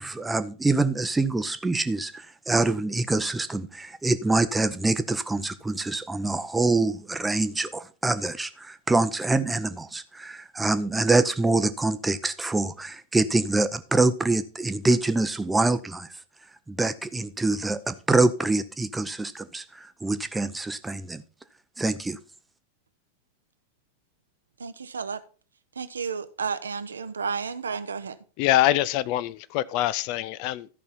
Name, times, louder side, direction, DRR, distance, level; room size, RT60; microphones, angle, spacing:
voice 1, 0.0-16.1 16.7-21.2 21.8-22.2, right 2 dB, 10° right, 0.7 m, -25 dB
voice 2, 24.6-25.2 25.8-28.2, right 5 dB, 70° right, 0.8 m, -32 dB
voice 3, 28.4-30.7, left 14 dB, 45° left, 0.5 m, -24 dB
13.5 x 5.5 x 4.3 m
figure-of-eight pair, 90°, 0 cm